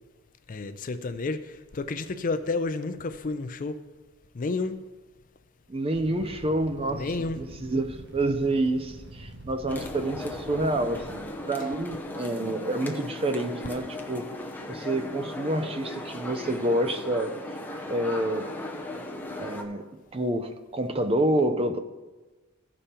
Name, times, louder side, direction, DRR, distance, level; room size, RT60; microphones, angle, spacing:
voice 1, 0.5-3.8 4.3-4.8 6.9-7.4, left 3 dB, 40° left, 11 dB, 0.4 m, -31 dB
voice 2, 5.7-7.1 7.4-14.3 14.7-17.3 17.9-18.5 19.4-19.9 20.1-21.8, right 1 dB, 25° right, 9 dB, 0.5 m, -28 dB
Fire, 6.0-11.3, right 1 dB, 50° right, 1.2 m, -45 dB
sound 1, 9.7-19.6, left 1 dB, 10° left, 0.7 m, -37 dB
15.0 x 5.3 x 4.3 m, 1.2 s
head